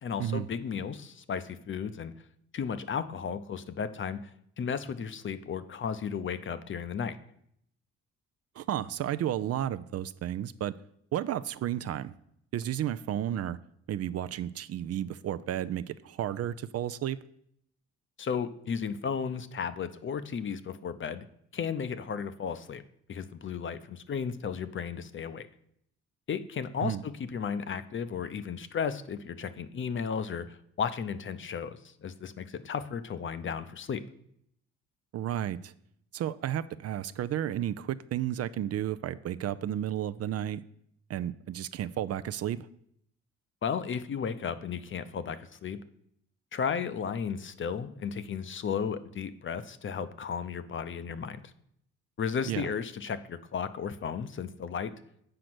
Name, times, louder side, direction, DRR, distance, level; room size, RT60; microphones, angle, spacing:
voice 1, 0.0-2.1 2.5-4.3 4.6-7.2 18.2-21.3 21.5-22.8 23.1-25.5 26.3-34.0 43.6-45.8 46.5-51.4 52.2-55.0, left 6 dB, 40° left, 0.6 m, -34 dB
voice 2, 8.6-10.7 11.1-12.1 12.5-13.6 13.9-17.2 26.8-27.0 35.1-35.7 36.1-40.6 41.1-42.7 52.5-52.7, right 11 dB, 55° right, 0.4 m, -32 dB
7.7 x 5.1 x 6.0 m
cardioid pair, 90°, 30 cm